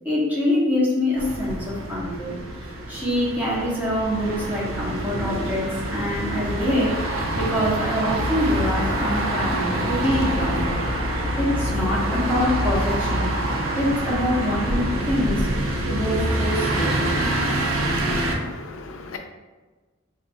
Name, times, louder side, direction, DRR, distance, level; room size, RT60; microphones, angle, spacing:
voice 1, 0.0-2.4 2.9-10.8 11.4-13.3 13.8-15.5 15.8-17.2, left 1 dB, 10° right, -7 dB, 1.0 m, -25 dB
sound 1, 1.2-18.3, right 1 dB, 85° right, 0.6 m, -26 dB
voice 2, 17.9-19.2, left 3 dB, 75° left, 4 dB, 0.5 m, -38 dB
5.0 x 2.6 x 2.2 m, 1.3 s
head